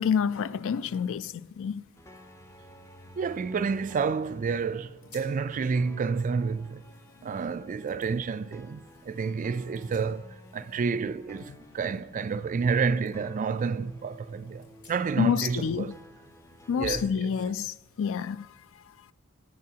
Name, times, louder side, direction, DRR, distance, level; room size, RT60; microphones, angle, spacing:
voice 1, 0.0-1.8 15.2-15.9 16.7-18.5, left 7 dB, 60° left, 0.4 m, -28 dB
sound 1, 2.0-17.0, equal, 15° left, 0.5 m, -52 dB
voice 2, 3.2-6.8 7.2-15.9 16.8-17.3, right 5 dB, 35° right, 0.3 m, -29 dB
sound 2, 5.0-5.5 5.9-7.3 7.9-8.1 9.5-10.6 10.9-12.7 13.0-13.1 13.6-13.7 14.6-15.3, left 4 dB, 85° left, 4.1 m, -59 dB
18.0 x 8.4 x 2.8 m
head